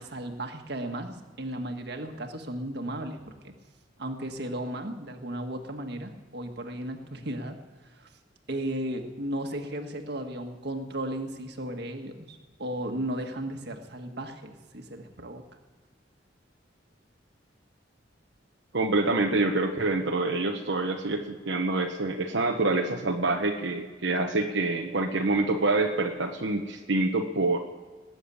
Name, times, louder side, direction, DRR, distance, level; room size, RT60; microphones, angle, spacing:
voice 1, 0.0-3.5 4.0-7.6 8.0-8.1 8.5-15.4, right 1 dB, 65° right, 5 dB, 1.6 m, -35 dB
voice 2, 18.7-27.6, right 2 dB, 85° right, 1 dB, 1.1 m, -26 dB
20.0 x 7.1 x 8.6 m, 1.4 s
head